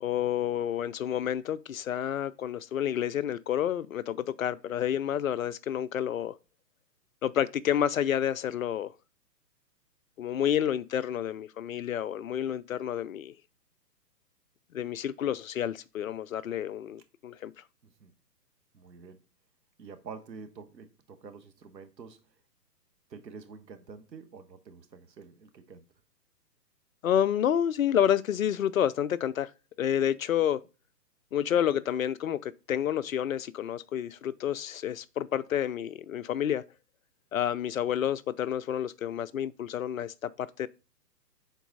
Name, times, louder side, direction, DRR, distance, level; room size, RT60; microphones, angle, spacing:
voice 1, 0.0-6.3 7.2-8.9 10.2-13.3 14.7-17.5 27.0-29.5 29.8-30.6 31.3-36.6 37.3-40.7, left 10 dB, 55° left, 0.5 m, -29 dB
voice 2, 18.7-19.2 19.8-22.2 23.1-25.9, right 5 dB, 80° right, 1.4 m, -47 dB
8.1 x 4.0 x 4.0 m
hypercardioid pair, 140°, 50 cm